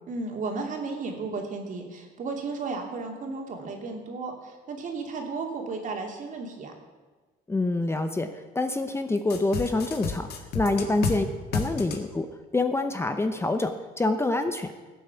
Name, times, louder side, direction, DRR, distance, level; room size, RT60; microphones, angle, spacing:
voice 1, 0.1-6.7 10.7-10.9, right 4 dB, 50° right, 2 dB, 2.8 m, -34 dB
voice 2, 7.5-10.3 10.5-14.7, left 2 dB, 15° left, 8 dB, 0.8 m, -26 dB
sound 1, 9.3-11.2 11.5-12.0, left 5 dB, 70° left, 1.7 m, -30 dB
15.0 x 8.5 x 7.0 m, 1.3 s
cardioid pair, 110°, 17 cm